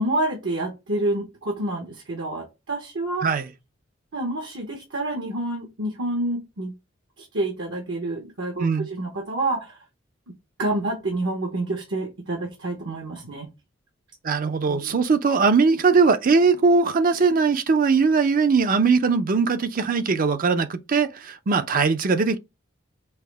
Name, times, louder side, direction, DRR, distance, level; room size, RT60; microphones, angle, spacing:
voice 1, 0.0-3.3 4.1-6.7 7.2-9.8 10.6-13.5 14.7-14.9, right 2 dB, 70° right, 1.0 m, -28 dB
voice 2, 14.2-22.4, right 4 dB, 45° right, 0.5 m, -20 dB
5.5 x 2.1 x 3.3 m
head